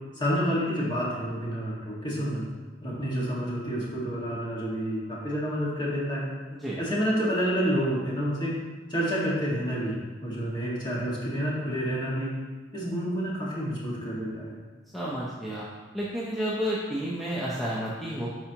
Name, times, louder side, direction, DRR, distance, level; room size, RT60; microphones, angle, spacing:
voice 1, 0.2-2.4 2.8-6.3 6.8-8.6 8.9-12.3 12.7-14.6, equal, 25° left, -6 dB, 1.9 m, -29 dB
voice 2, 14.9-15.7 15.9-18.3, equal, ahead, -7 dB, 0.8 m, -31 dB
10.0 x 4.8 x 3.0 m, 1.4 s
head